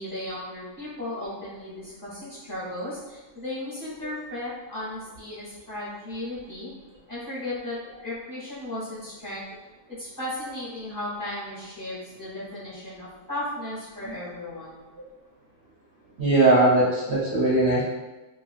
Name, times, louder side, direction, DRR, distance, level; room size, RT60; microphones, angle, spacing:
voice 1, 0.0-6.7 7.1-9.4 9.9-14.9, left 1 dB, 35° left, -10 dB, 0.9 m, -35 dB
voice 2, 16.2-17.8, right 2 dB, 55° right, -8 dB, 0.8 m, -19 dB
3.3 x 2.3 x 2.4 m, 1.1 s
omnidirectional pair, 1.6 m